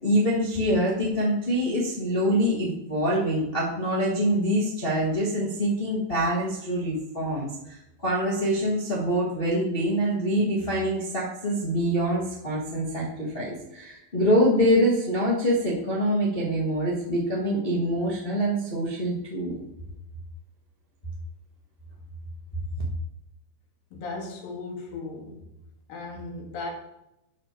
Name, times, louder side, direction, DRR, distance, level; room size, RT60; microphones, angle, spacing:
voice 1, 0.0-19.6, equal, 30° left, -5 dB, 0.9 m, -25 dB
voice 2, 23.9-25.4 25.9-26.7, left 3 dB, 70° left, 0 dB, 3.5 m, -36 dB
11.5 x 5.1 x 4.5 m, 0.85 s
omnidirectional pair, 4.3 m